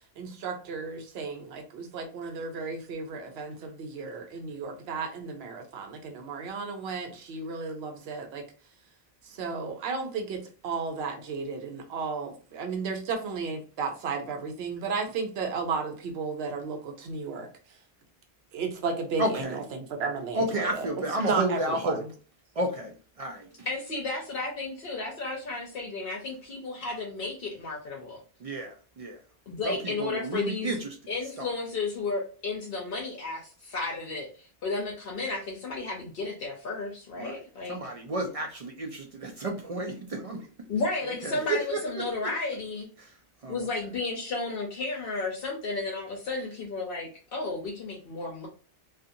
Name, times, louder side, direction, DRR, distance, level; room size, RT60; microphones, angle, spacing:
voice 1, 0.2-8.4 9.2-17.5 18.5-20.9 21.2-22.1, right 4 dB, 80° right, 4 dB, 0.9 m, -34 dB
voice 2, 19.2-19.6 20.3-22.0 22.6-23.5 28.4-29.2 29.6-31.0 31.4-31.5 37.2-37.4 37.7-40.5 41.0-42.3 43.0-43.1 43.4-43.7, right 1 dB, 55° right, 3 dB, 0.4 m, -32 dB
voice 3, 23.7-28.2 29.5-30.8 31.1-37.8 40.7-42.9 43.5-48.5, left 3 dB, 70° left, -1 dB, 0.8 m, -33 dB
2.5 x 2.4 x 2.6 m, 0.38 s
omnidirectional pair, 1.0 m